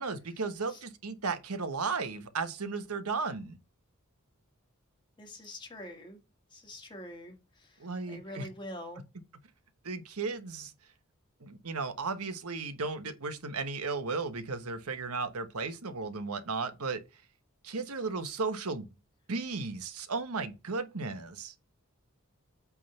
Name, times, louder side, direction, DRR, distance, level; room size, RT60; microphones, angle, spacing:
voice 1, 0.0-3.6 7.8-8.5 9.8-10.7 11.4-17.0 17.6-18.9 19.3-21.5, right 4 dB, 90° right, 1.2 m, -35 dB
voice 2, 5.2-6.2 6.5-9.0, left 1 dB, 20° left, 2.0 m, -45 dB
8.4 x 3.7 x 5.5 m
head